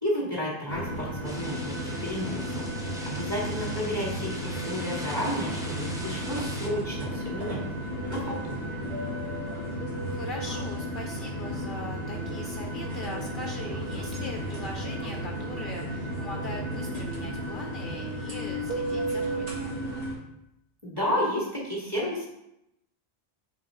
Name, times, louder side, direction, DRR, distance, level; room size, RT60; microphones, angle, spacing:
voice 1, 0.0-2.4 3.1-7.6 8.1-8.6 20.8-22.3, left 1 dB, 20° right, -5 dB, 2.2 m, -31 dB
sound 1, 0.7-20.1, right 1 dB, 90° right, 1.7 m, -33 dB
sound 2, 1.2-6.7, equal, 5° right, 0.7 m, -41 dB
voice 2, 10.1-19.8, left 3 dB, 60° left, 2 dB, 0.6 m, -41 dB
5.6 x 4.6 x 3.8 m, 0.83 s
omnidirectional pair, 1.1 m